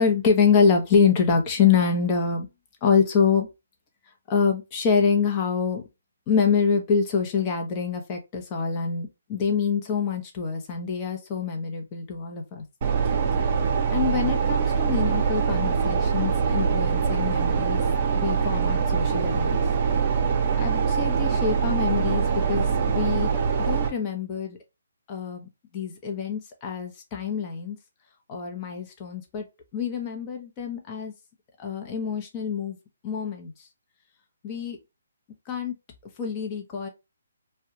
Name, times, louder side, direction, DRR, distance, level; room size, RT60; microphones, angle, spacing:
voice 1, 0.0-2.5 2.8-3.5 4.3-5.8 6.3-12.6 13.9-17.8 18.1-19.6 20.6-23.3 23.6-24.6 25.1-25.5 25.7-27.8 28.3-29.4 29.7-31.1 31.6-32.8 33.0-33.5 34.4-34.8 35.5-35.8 36.2-36.9, left 6 dB, 25° left, 2 dB, 0.7 m, -25 dB
sound 1, 12.8-23.9, right 6 dB, 40° right, 0.7 m, -23 dB
2.3 x 2.1 x 2.8 m, 0.24 s
hypercardioid pair, 150°, 0 cm